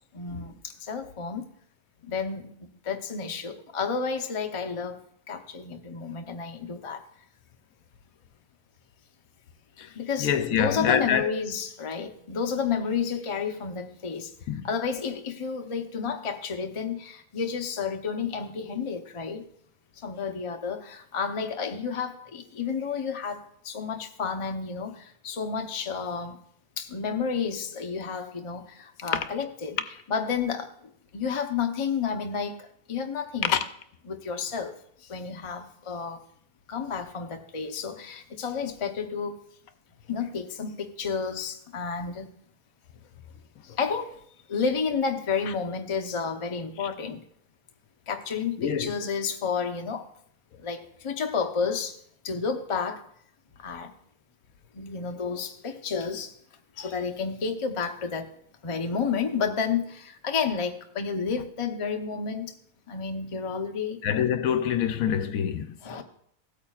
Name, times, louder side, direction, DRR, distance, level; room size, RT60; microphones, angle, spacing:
voice 1, 0.1-1.5 2.0-2.5 2.8-5.0 5.3-7.0 9.9-14.3 14.6-19.4 20.0-26.4 26.8-29.8 30.1-30.7 31.1-33.5 34.1-36.2 36.7-39.4 40.1-42.3 43.6-44.1 44.5-47.2 48.1-50.1 50.6-52.0 52.2-53.0 53.6-53.9 54.7-56.3 56.8-58.3 58.6-62.5 62.9-64.0 65.8-66.0, left 5 dB, 35° left, 0.5 m, -31 dB
voice 2, 10.2-11.4 14.5-14.7 33.4-33.6 46.8-46.9 48.6-48.9 56.8-56.9 64.0-66.0, left 8 dB, 70° left, 1.0 m, -26 dB
16.0 x 8.6 x 2.4 m
omnidirectional pair, 1.6 m